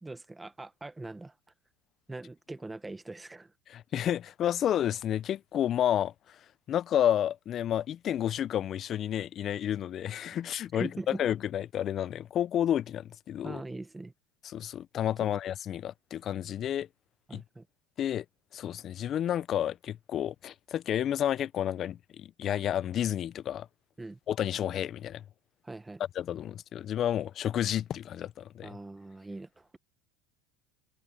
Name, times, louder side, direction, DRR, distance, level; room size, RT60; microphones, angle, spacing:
voice 1, 0.0-1.3 2.1-3.5 10.7-11.2 13.4-14.1 15.2-15.3 17.3-17.7 24.0-24.2 25.6-26.0 28.6-29.8, right 2 dB, 10° right, 1.1 m, -41 dB
voice 2, 3.7-6.4 6.7-13.6 14.4-16.9 17.3-17.4 18.0-18.2 18.5-23.7 24.3-25.2 26.2-28.7, left 10 dB, 40° left, 0.4 m, -30 dB
supercardioid pair, 130°, 0 cm